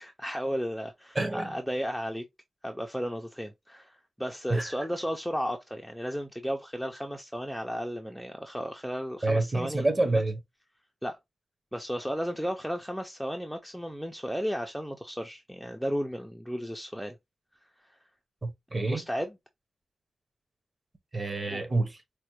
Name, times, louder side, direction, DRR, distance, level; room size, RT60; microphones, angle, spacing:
voice 1, 0.0-2.2 2.6-9.9 11.0-11.2 11.7-17.2 17.9-18.0 18.8-19.4 21.5-21.6, equal, ahead, 0.3 m, -34 dB
voice 2, 1.1-1.6 4.5-4.7 9.2-10.4 18.4-19.0 21.1-22.0, right 2 dB, 25° right, 0.7 m, -28 dB
4.3 x 2.1 x 2.9 m
wide cardioid pair, 160°, 0 cm